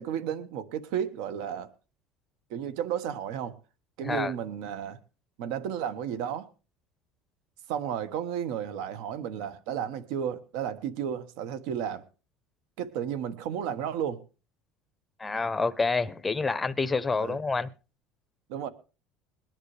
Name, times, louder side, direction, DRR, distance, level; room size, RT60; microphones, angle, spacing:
voice 1, 0.0-1.7 2.5-3.6 4.0-5.0 5.4-6.5 7.7-12.0 12.8-14.2 17.2-17.4 18.5-18.7, right 9 dB, 75° right, 1.4 m, -33 dB
voice 2, 15.2-17.7, left 3 dB, 10° left, 0.7 m, -28 dB
21.5 x 10.5 x 3.3 m
cardioid pair, 160°, 0 cm